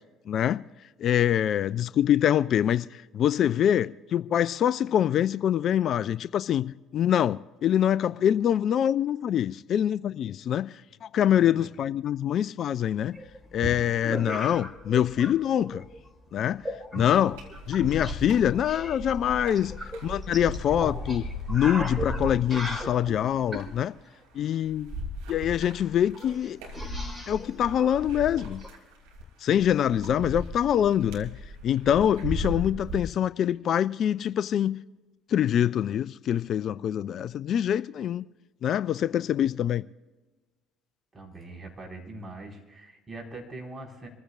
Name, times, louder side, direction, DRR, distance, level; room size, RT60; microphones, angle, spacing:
voice 1, 0.3-0.6 1.0-13.1 13.5-15.8 16.3-16.6 16.9-17.4 17.7-19.7 20.0-23.9 24.3-24.9 25.3-26.6 27.3-28.6 29.4-31.4 31.6-34.8 35.3-38.2 38.6-39.8, left 10 dB, 50° left, 0.3 m, -25 dB
voice 2, 11.3-11.7 30.0-30.2 41.1-44.1, right 2 dB, 25° right, 4.8 m, -42 dB
sound 1, 13.1-15.3 15.6-16.1 16.6-18.2 18.5-23.7 25.4-25.5 25.7-25.8 26.2-28.7, left 1 dB, 5° right, 4.1 m, -37 dB
sound 2, 17.3-33.0, left 1 dB, 70° right, 2.8 m, -37 dB
27.0 x 15.0 x 2.4 m
figure-of-eight pair, 55°, 0 cm